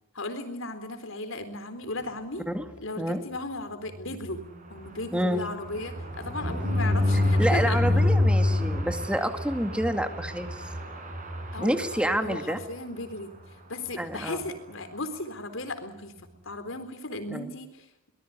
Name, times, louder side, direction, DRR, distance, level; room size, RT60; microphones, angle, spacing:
voice 1, 0.1-2.4 2.8-4.4 4.7-7.8 11.5-13.3 13.7-16.1 16.4-18.1, left 2 dB, 75° left, 9 dB, 4.0 m, -36 dB
sound 1, 3.9-12.7 13.1-13.3 13.5-13.6 13.9-14.2, left 1 dB, 40° right, 6.6 m, -27 dB
voice 2, 5.1-5.4 7.4-10.7 11.6-12.6 14.0-14.4 17.3-17.5, equal, 5° right, 7 dB, 2.2 m, -28 dB
23.5 x 19.5 x 9.6 m, 0.93 s
head